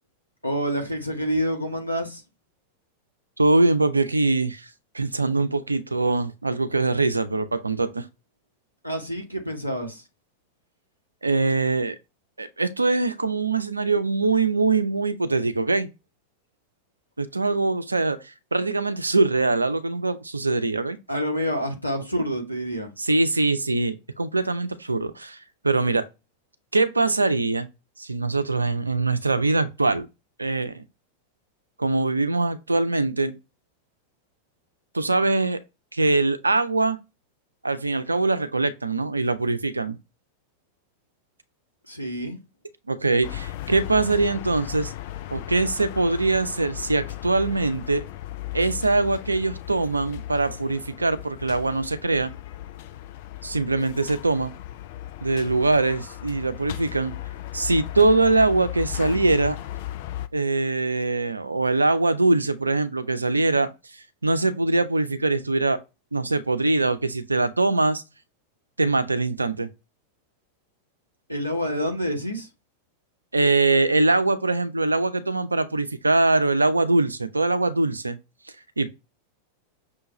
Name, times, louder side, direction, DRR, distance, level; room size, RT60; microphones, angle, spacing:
voice 1, 0.4-2.2 8.8-10.0 21.1-22.9 41.9-42.4 71.3-72.5, equal, 90° left, 0.8 m, -27 dB
voice 2, 3.4-4.7 4.9-8.0 11.2-12.0 12.4-15.9 17.2-18.2 18.5-21.0 23.0-25.4 25.6-26.1 26.7-27.7 28.0-30.1 30.4-30.8 31.8-33.3 34.9-35.6 35.9-37.0 37.6-40.0 42.9-44.9 45.3-48.0 48.5-52.3 53.4-54.5 55.2-57.1 57.5-59.6 60.3-63.7 64.2-65.8 66.1-68.0 68.8-69.7 73.3-78.2 78.8-78.9, right 3 dB, 80° right, 0.4 m, -22 dB
sound 1, 43.2-60.3, left 14 dB, 50° left, 0.3 m, -36 dB
6.1 x 2.3 x 3.0 m
figure-of-eight pair, 90°, 0 cm